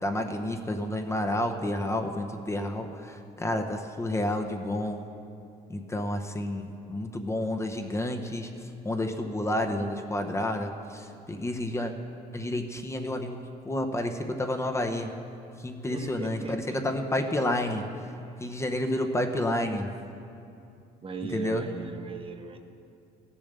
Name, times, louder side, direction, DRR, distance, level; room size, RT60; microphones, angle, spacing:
voice 1, 0.0-5.0 5.7-8.5 8.8-11.9 12.3-15.1 15.6-17.8 18.4-19.9 21.3-21.7, left 1 dB, 15° left, 4 dB, 0.8 m, -30 dB
voice 2, 15.9-16.9 21.0-22.6, right 4 dB, 30° right, 6 dB, 1.0 m, -37 dB
15.5 x 7.1 x 6.7 m, 2.6 s
cardioid pair, 110°, 17 cm